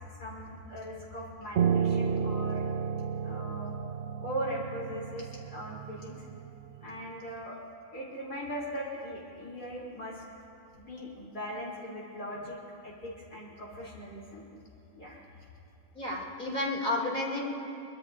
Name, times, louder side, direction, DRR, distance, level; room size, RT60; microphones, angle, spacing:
voice 1, 0.0-2.7 3.2-3.7 4.2-6.2 6.8-7.6 7.9-10.2 10.7-12.6 12.8-14.4 15.0-15.2, equal, 80° left, -6 dB, 4.4 m, -39 dB
Piano, 1.6-6.8, right 7 dB, 70° right, 0.6 m, -32 dB
voice 2, 15.9-17.4, left 2 dB, 30° left, -5 dB, 4.9 m, -31 dB
24.0 x 21.5 x 2.7 m, 2.8 s
omnidirectional pair, 1.6 m